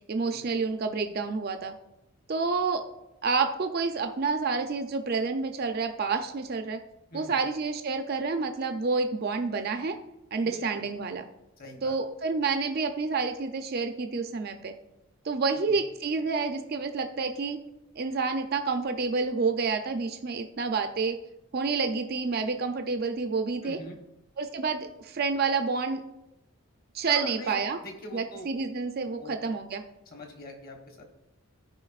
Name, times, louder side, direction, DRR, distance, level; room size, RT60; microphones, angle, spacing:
voice 1, 0.1-1.7 2.3-2.8 3.2-6.8 7.1-9.9 10.3-11.2 11.8-14.7 15.2-17.6 18.0-21.2 21.5-23.8 24.4-26.0 26.9-27.8 28.1-29.8, right 4 dB, 45° right, 6 dB, 0.4 m, -29 dB
voice 2, 10.4-10.9 11.6-12.0 15.5-15.8 23.6-24.0 27.1-28.5 29.2-29.4 30.1-31.0, left 1 dB, 40° left, 3 dB, 1.1 m, -43 dB
13.5 x 4.9 x 2.4 m, 0.89 s
head